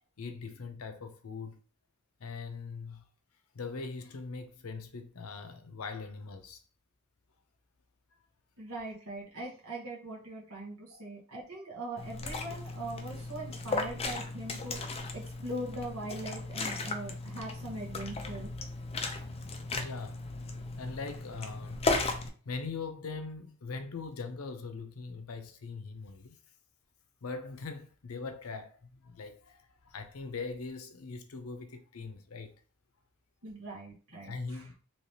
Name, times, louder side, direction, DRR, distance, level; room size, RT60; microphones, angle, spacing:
voice 1, 0.2-1.6 2.2-3.0 3.5-6.6 10.9-11.1 19.7-22.0 22.4-26.4 27.2-32.5 34.2-34.7, left 4 dB, 85° left, 0.6 m, -41 dB
voice 2, 8.6-14.8 15.1-18.5 33.4-34.6, right 1 dB, 80° right, 1.1 m, -41 dB
Liquid, 12.0-22.3, left 3 dB, 30° left, 0.5 m, -36 dB
3.2 x 2.9 x 2.8 m
head